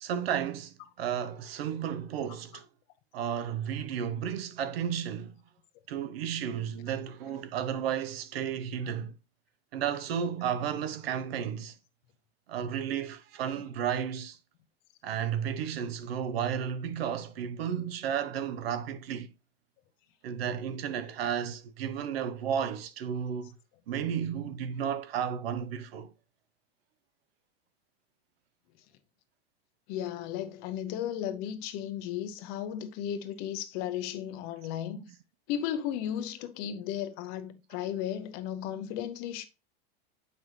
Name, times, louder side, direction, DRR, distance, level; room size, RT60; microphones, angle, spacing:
voice 1, 0.0-2.6 3.1-5.3 5.9-9.1 9.7-11.7 12.5-14.4 15.0-19.3 20.2-23.5 23.9-26.1 34.9-35.0, right 8 dB, 75° right, 0.9 m, -33 dB
voice 2, 29.9-35.1 35.5-39.5, left 10 dB, 30° left, 0.6 m, -35 dB
7.6 x 5.7 x 3.1 m
supercardioid pair, 165°, 30 cm